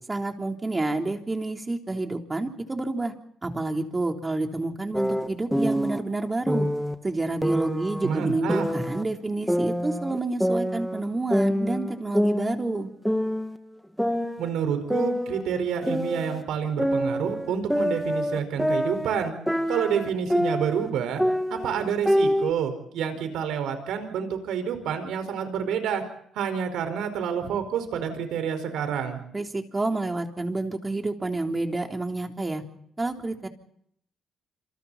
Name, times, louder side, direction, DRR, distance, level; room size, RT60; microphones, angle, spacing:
voice 1, 0.1-3.1 3.4-6.7 7.0-12.9 29.3-32.6 33.0-33.5, right 2 dB, 20° right, 3 dB, 3.6 m, -29 dB
sound 1, 4.9-6.0 6.5-7.0 7.4-9.0 9.5-11.0 11.3-12.8 13.1-13.6 14.0-16.4 16.8-20.9 21.2-22.5, equal, ahead, 2.1 m, -26 dB
voice 2, 8.0-8.7 14.4-19.3 19.7-21.2 21.5-26.0 26.3-29.2, right 7 dB, 85° right, 8 dB, 4.8 m, -28 dB
27.5 x 27.0 x 4.2 m, 0.69 s
cardioid pair, 90°, 0 cm